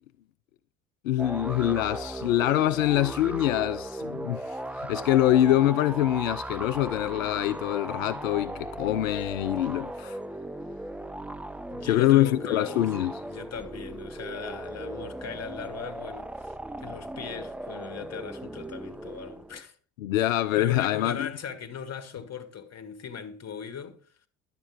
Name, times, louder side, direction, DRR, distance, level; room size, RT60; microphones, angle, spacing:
voice 1, 1.0-10.2 11.9-13.1 20.0-21.3, left 13 dB, 85° left, 0.5 m, -24 dB
sound 1, 1.2-19.6, right 1 dB, 5° right, 0.5 m, -37 dB
voice 2, 11.7-16.5 16.8-19.8 20.1-24.0, left 7 dB, 40° left, 1.8 m, -39 dB
11.0 x 8.2 x 4.8 m
hypercardioid pair, 60°, 39 cm